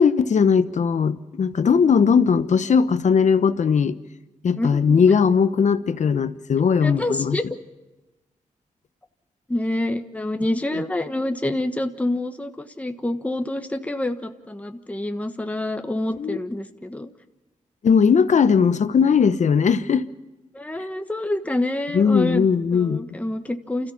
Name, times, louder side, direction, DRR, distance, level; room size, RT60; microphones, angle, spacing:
voice 1, 0.0-4.0 4.4-7.4 16.2-16.4 17.8-20.0 21.9-23.0, left 6 dB, 65° left, 12 dB, 1.0 m, -18 dB
voice 2, 4.6-5.1 6.8-7.4 9.5-17.1 20.5-22.4 22.7-23.9, left 1 dB, 10° left, 6 dB, 1.3 m, -27 dB
29.5 x 14.0 x 7.2 m, 1.1 s
cardioid pair, 70°, 13 cm